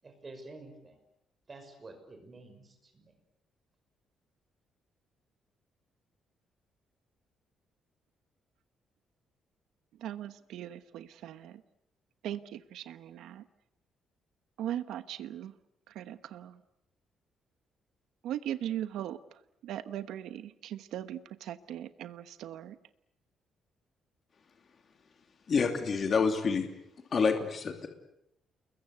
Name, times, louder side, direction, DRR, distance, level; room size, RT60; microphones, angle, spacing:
voice 1, 0.0-1.0 1.5-3.1, right 2 dB, 25° right, 6 dB, 5.9 m, -49 dB
voice 2, 10.0-11.6 12.2-13.4 14.6-15.5 15.9-16.5 18.2-19.2 19.6-22.8, right 11 dB, 90° right, 12 dB, 1.1 m, -39 dB
voice 3, 25.5-26.7 27.1-27.9, left 5 dB, 35° left, 5 dB, 2.9 m, -27 dB
29.0 x 22.0 x 8.2 m, 0.79 s
cardioid pair, 155°, 0 cm